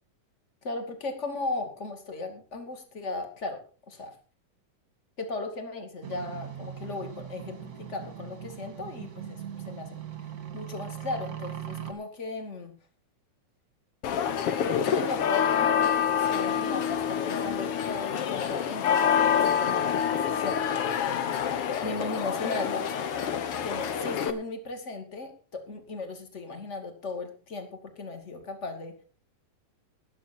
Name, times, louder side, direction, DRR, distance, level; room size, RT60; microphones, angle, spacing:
voice 1, 0.6-3.6 3.9-4.1 5.2-9.9 10.5-12.8 14.6-20.6 21.1-22.9 23.6-27.7 28.0-28.9, left 3 dB, 25° left, 5 dB, 2.0 m, -36 dB
sound 1, 6.0-11.9, right 10 dB, 35° right, 1.7 m, -40 dB
sound 2, 14.0-24.3, left 8 dB, 65° left, 1.4 m, -27 dB
20.0 x 8.0 x 4.4 m, 0.37 s
omnidirectional pair, 4.0 m